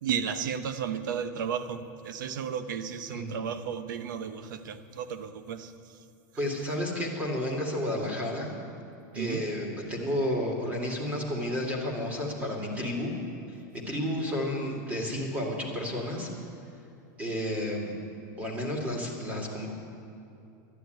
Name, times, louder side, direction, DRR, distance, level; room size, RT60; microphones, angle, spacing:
voice 1, 0.0-5.7 9.1-9.4, right 7 dB, 85° right, 10 dB, 0.9 m, -33 dB
voice 2, 6.4-8.5 9.1-13.1 13.7-16.3 17.2-17.9 18.4-19.7, left 1 dB, 15° right, -1 dB, 2.4 m, -31 dB
12.0 x 10.5 x 9.2 m, 2.6 s
supercardioid pair, 170°, 10 cm